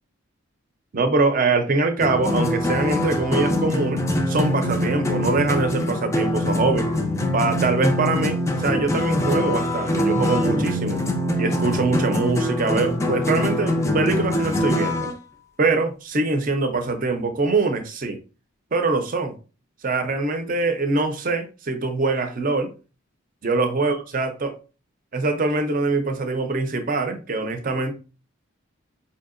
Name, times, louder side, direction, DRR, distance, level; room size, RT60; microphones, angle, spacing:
voice 1, 0.9-6.9 7.3-11.0 11.4-15.1 15.6-18.2 18.7-19.3 19.8-22.7 23.4-24.5 25.1-27.9, right 3 dB, 40° right, 0.5 m, -23 dB
sound 1, 2.0-15.1, left 1 dB, 15° left, 0.3 m, -23 dB
4.6 x 2.7 x 2.5 m
head